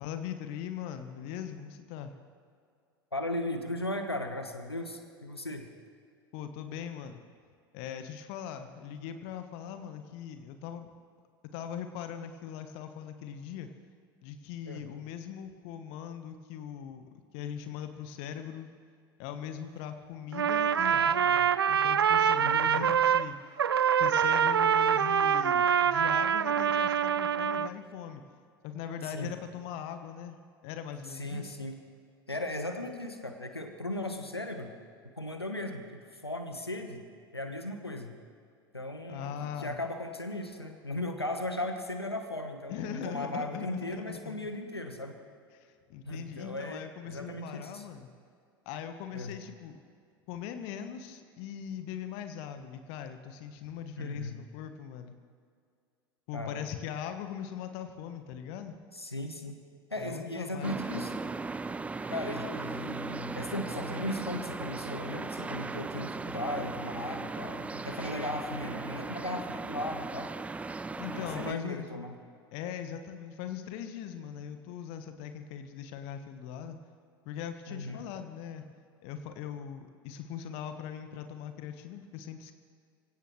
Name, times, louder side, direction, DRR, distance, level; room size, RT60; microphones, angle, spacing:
voice 1, 0.0-2.1 6.3-7.2 7.7-10.9 11.5-13.7 14.2-17.1 17.3-18.7 19.2-23.4 24.0-28.2 28.6-30.4 30.6-31.5 39.1-39.8 42.7-44.4 45.5-48.1 48.6-49.8 50.3-55.1 56.3-58.8 60.0-61.1 71.0-71.9 72.5-76.8 77.2-78.6 79.0-82.5, left 9 dB, 50° left, 8 dB, 1.2 m, -40 dB
voice 2, 3.1-5.7 14.6-14.8 22.4-22.9 29.0-29.3 31.1-31.8 32.3-34.7 35.2-37.0 37.3-38.1 38.7-45.2 46.0-47.8 49.1-49.4 54.0-54.3 56.3-56.6 58.9-59.6 59.9-61.1 62.1-70.3 71.1-72.1 77.7-78.0, left 1 dB, 85° left, 6 dB, 1.2 m, -37 dB
Trumpet, 20.3-23.3 23.6-27.7, right 8 dB, 75° right, 0.4 m, -25 dB
sound 1, 60.6-71.5, right 3 dB, 10° right, 0.5 m, -37 dB
26.5 x 16.5 x 3.2 m, 2.2 s
figure-of-eight pair, 80°, 13 cm